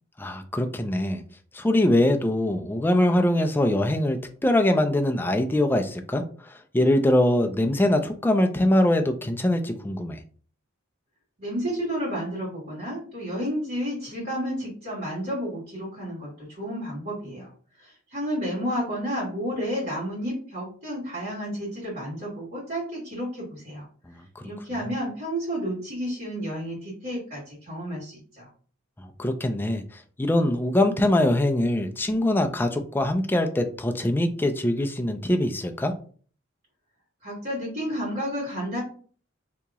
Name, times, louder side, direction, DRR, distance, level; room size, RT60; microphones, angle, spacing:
voice 1, 0.2-1.2 1.5-6.2 6.7-10.2 24.4-24.5 29.2-29.8 30.2-35.9, left 1 dB, 10° left, 5 dB, 0.3 m, -23 dB
voice 2, 11.4-17.5 17.8-23.9 24.4-28.5 37.2-38.8, equal, 55° right, -9 dB, 1.8 m, -31 dB
2.9 x 2.8 x 3.5 m, 0.43 s
head